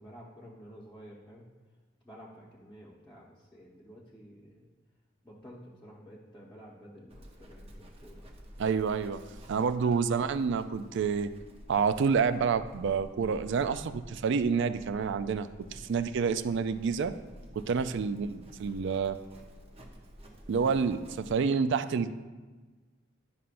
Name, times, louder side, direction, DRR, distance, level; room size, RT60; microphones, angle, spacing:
voice 1, 0.0-1.5 2.0-4.6 5.2-8.4 9.8-10.1 15.7-16.0 17.8-18.0, equal, 5° left, -8 dB, 1.0 m, -51 dB
Livestock farm animals working animals, 7.1-21.4, equal, 30° right, 0.8 m, -50 dB
voice 2, 8.6-9.2 9.5-11.3 11.7-17.1 17.5-19.2 20.5-22.1, right 5 dB, 60° right, 12 dB, 0.4 m, -28 dB
11.0 x 5.6 x 2.5 m, 1.3 s
head